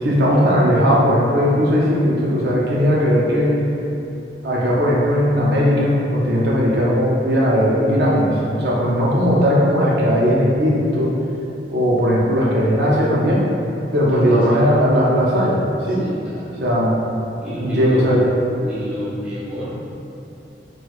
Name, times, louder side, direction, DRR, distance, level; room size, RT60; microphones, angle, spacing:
voice 1, 0.0-3.5 4.4-11.1 11.7-13.4 13.9-15.6 15.8-16.0 16.6-17.0 17.6-18.2, equal, 70° right, -5 dB, 0.5 m, -17 dB
voice 2, 14.1-14.7 15.9-16.5 17.4-18.4 18.6-19.7, equal, 5° right, -11 dB, 0.6 m, -30 dB
4.2 x 2.2 x 2.3 m, 2.7 s
head